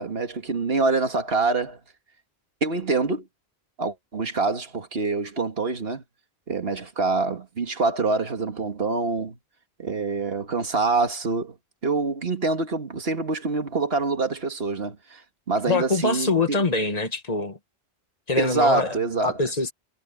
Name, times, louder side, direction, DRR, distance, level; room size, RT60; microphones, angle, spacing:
voice 1, 0.0-1.8 2.6-3.2 3.8-6.0 6.5-9.4 9.8-11.6 11.8-15.2 15.5-16.6 18.4-19.4, right 3 dB, 70° right, 2.0 m, -25 dB
voice 2, 15.7-17.6 18.3-19.0 19.2-19.7, left 3 dB, 40° left, 1.8 m, -24 dB
omnidirectional pair, 1.1 m